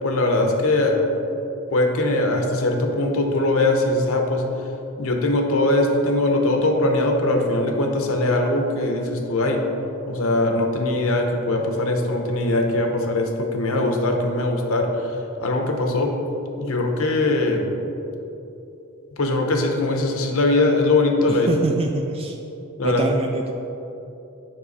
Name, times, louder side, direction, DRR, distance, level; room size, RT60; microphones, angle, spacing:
voice 1, 0.0-1.1 1.7-4.5 5.0-9.6 10.1-16.2 16.6-17.7 19.2-21.5 22.8-23.0, left 2 dB, 70° left, 3 dB, 0.8 m, -21 dB
voice 2, 21.5-22.4 22.8-23.5, right 2 dB, 25° right, 3 dB, 0.3 m, -25 dB
7.4 x 5.5 x 4.1 m, 3.0 s
head